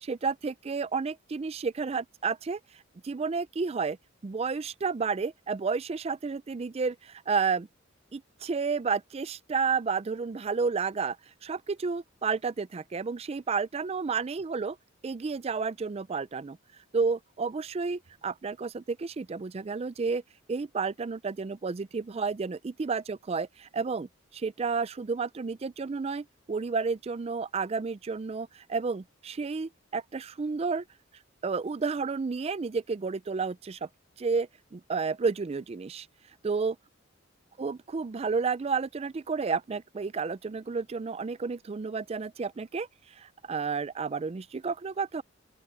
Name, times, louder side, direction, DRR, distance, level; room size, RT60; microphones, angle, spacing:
voice 1, 0.0-2.6 3.0-4.0 4.2-7.7 8.1-11.2 11.4-14.7 15.0-16.6 16.9-20.2 20.5-30.8 31.4-33.9 34.2-36.1 36.4-36.8 37.6-42.9 43.2-45.2, right 5 dB, 30° right, 0.4 m, -31 dB
open air
head